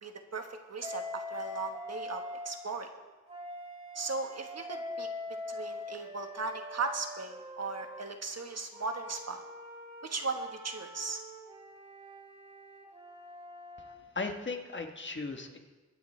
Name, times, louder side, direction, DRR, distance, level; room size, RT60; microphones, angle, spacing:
voice 1, 0.0-2.9 3.9-5.1 5.5-9.4 10.0-11.2, right 4 dB, 55° right, 5 dB, 1.3 m, -37 dB
Wind instrument woodwind instrument, 0.8-2.6 3.3-8.0 8.7-14.0, left 2 dB, 20° right, 2.5 m, -43 dB
voice 2, 13.8-15.6, left 3 dB, 40° left, 4 dB, 1.3 m, -37 dB
22.0 x 9.1 x 3.3 m, 1.3 s
wide cardioid pair, 105°, 30 cm